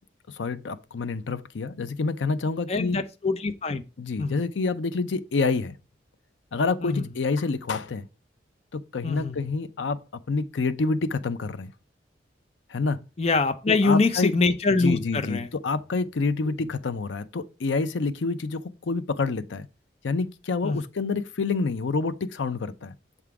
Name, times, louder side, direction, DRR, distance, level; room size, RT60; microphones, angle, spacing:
voice 1, 0.3-3.0 4.0-5.8 6.5-8.1 8.7-10.0 10.3-11.7 12.7-13.0 13.7-14.3 14.8-19.7 20.0-22.9, left 4 dB, 80° left, 0.5 m, -28 dB
voice 2, 2.7-3.8 4.2-4.4 6.8-7.0 9.0-9.5 13.2-15.5 20.6-20.8, left 3 dB, 35° left, 0.4 m, -24 dB
6.8 x 3.7 x 4.7 m
head